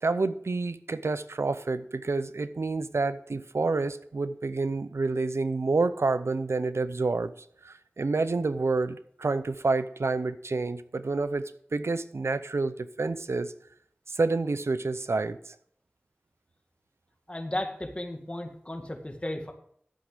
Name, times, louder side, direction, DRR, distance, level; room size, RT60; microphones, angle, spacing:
voice 1, 0.0-7.3 7.6-13.5 14.1-15.5, right 3 dB, 90° right, 13 dB, 0.6 m, -28 dB
voice 2, 17.3-19.5, left 1 dB, 25° left, 4 dB, 1.9 m, -34 dB
12.0 x 8.0 x 5.0 m, 0.66 s
wide cardioid pair, 55°, 4 cm